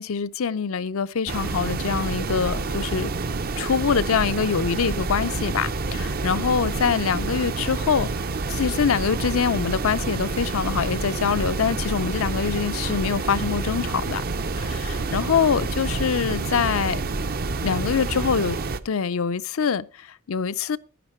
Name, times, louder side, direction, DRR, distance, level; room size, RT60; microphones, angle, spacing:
voice 1, 0.0-3.1 3.6-8.1 8.5-14.2 14.6-17.0 17.6-18.6 18.9-19.9 20.3-20.8, left 6 dB, 70° left, 0.5 m, -24 dB
sound 1, 1.3-18.8, right 3 dB, 45° right, 0.6 m, -28 dB
10.5 x 10.0 x 4.3 m
head